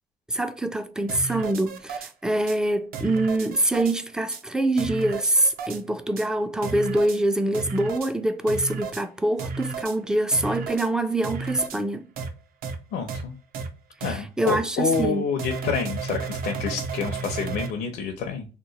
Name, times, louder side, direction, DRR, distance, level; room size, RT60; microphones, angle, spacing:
voice 1, 0.3-12.1 14.0-15.3, right 1 dB, 5° right, 0.3 m, -25 dB
sound 1, 1.1-2.1 2.5-2.6 2.9-4.0 4.3-4.4 4.8-5.8 6.2-6.3 6.6-7.2 7.5-8.1 8.5-9.0 9.4-10.0 10.3-10.9 11.2-11.8 12.2-12.3 12.6-12.8 13.1-13.2 13.5-13.7 14.0-14.1 14.5-14.6 14.9-15.1 15.4-17.7, right 5 dB, 60° right, 0.6 m, -33 dB
voice 2, 12.9-13.3 14.0-18.5, left 5 dB, 70° left, 0.6 m, -28 dB
2.9 x 2.1 x 3.9 m
cardioid pair, 110°, 17 cm